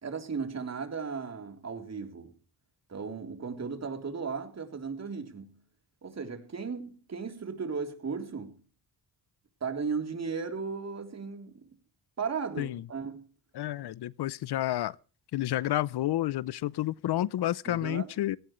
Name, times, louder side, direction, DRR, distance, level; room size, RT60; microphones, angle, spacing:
voice 1, 0.0-2.3 2.9-5.6 6.0-8.6 9.6-11.7 12.2-13.3 17.7-18.1, right 5 dB, 40° right, 3.6 m, -36 dB
voice 2, 13.5-15.0 15.3-18.4, left 14 dB, 80° left, 0.7 m, -30 dB
17.5 x 17.0 x 3.2 m
cardioid pair, 115°, 39 cm